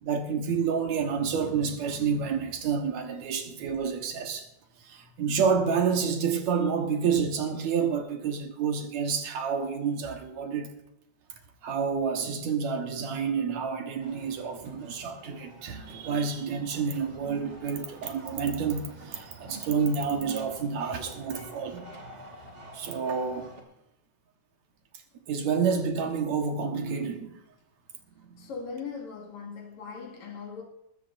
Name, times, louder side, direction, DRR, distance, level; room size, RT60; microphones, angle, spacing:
voice 1, 0.0-4.5 4.8-10.7 11.6-21.9 22.7-23.5 25.3-27.3 28.2-28.5, right 6 dB, 70° right, 2.6 m, -29 dB
sound 1, 14.0-23.6, right 1 dB, 25° right, 2.2 m, -48 dB
voice 2, 28.4-30.6, left 5 dB, 70° left, 3.4 m, -39 dB
20.5 x 13.5 x 2.6 m
omnidirectional pair, 3.4 m